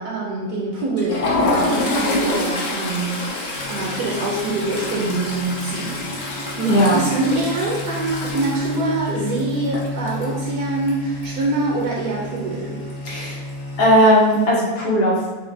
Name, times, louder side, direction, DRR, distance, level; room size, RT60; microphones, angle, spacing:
voice 1, 0.0-6.0 6.5-12.8, right 2 dB, 80° right, -4 dB, 1.2 m, -25 dB
Toilet flush, 0.8-11.5 11.8-12.1 12.4-12.5 13.5-14.0, left 2 dB, 55° left, 1.1 m, -27 dB
sound 1, 3.5-13.9, left 2 dB, 45° right, 0.8 m, -33 dB
voice 2, 6.7-7.0 13.0-13.4 13.8-15.2, equal, 80° left, -7 dB, 1.7 m, -16 dB
5.8 x 2.1 x 3.2 m, 1.2 s
omnidirectional pair, 1.7 m